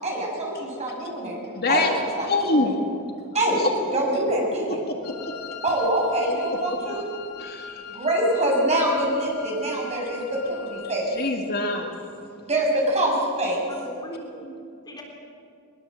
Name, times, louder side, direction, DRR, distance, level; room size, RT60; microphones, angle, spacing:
voice 1, 0.0-1.4 1.7-1.9 2.2-2.7 3.3-3.6 3.9-4.8 5.6-7.1 7.9-11.2 12.5-13.6, right 1 dB, 30° right, -2 dB, 7.3 m, -25 dB
voice 2, 1.6-1.9 2.3-2.8 3.6-4.0 4.9-5.5 5.8-6.4 7.4-7.9 10.8-11.9, left 3 dB, 45° left, 2 dB, 2.0 m, -26 dB
Wind instrument woodwind instrument, 5.0-11.1, left 7 dB, 85° left, 3.2 m, -41 dB
voice 3, 13.7-15.0, equal, 20° left, -1 dB, 3.7 m, -39 dB
22.0 x 21.5 x 7.7 m, 2.4 s
head